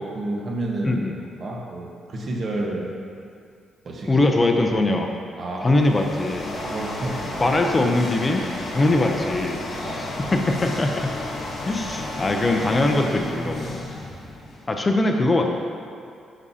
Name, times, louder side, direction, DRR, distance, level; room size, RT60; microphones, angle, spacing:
voice 1, 0.1-1.0 1.4-2.9 3.8-4.2 5.4-5.8 6.6-7.5 8.8-9.0 9.8-10.1, right 2 dB, 45° right, -1 dB, 1.2 m, -30 dB
voice 2, 0.8-1.1 4.1-5.1 5.6-6.5 7.4-8.4 8.7-9.6 9.9-11.1 11.7-13.8 14.7-15.5, left 2 dB, 25° left, 3 dB, 0.7 m, -21 dB
sound 1, 5.6-14.8, left 2 dB, 50° left, 1.5 m, -32 dB
10.5 x 6.2 x 2.8 m, 2.4 s
cardioid pair, 90°, 0 cm